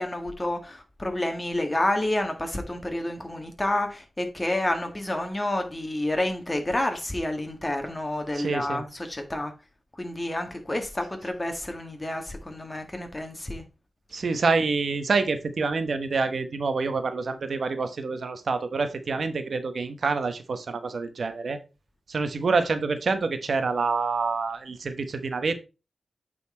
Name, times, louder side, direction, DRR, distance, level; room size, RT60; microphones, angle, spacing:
voice 1, 0.0-9.5 10.0-13.6, left 1 dB, 25° left, 1.7 m, -29 dB
voice 2, 8.3-8.8 14.1-21.6 22.1-25.6, right 4 dB, 75° right, 0.9 m, -27 dB
8.6 x 4.2 x 4.3 m
wide cardioid pair, 85°, 0 cm